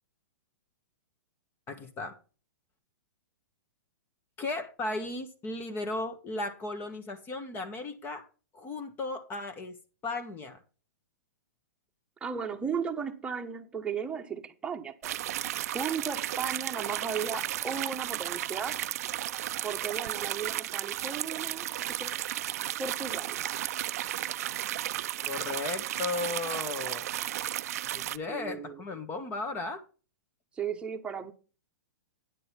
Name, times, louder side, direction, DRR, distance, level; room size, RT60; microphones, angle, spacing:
voice 1, 1.7-2.2 4.4-8.3 8.5-9.8 10.0-10.6 25.2-27.0 27.9-29.8, left 3 dB, 25° left, 1.4 m, -35 dB
voice 2, 12.2-15.2 15.7-18.8 19.6-22.1 22.8-23.4 28.3-28.8 30.6-31.3, right 6 dB, 10° right, 1.2 m, -35 dB
sound 1, 15.0-28.2, right 13 dB, 60° right, 0.5 m, -34 dB
9.9 x 7.6 x 4.4 m
hypercardioid pair, 125°, 9 cm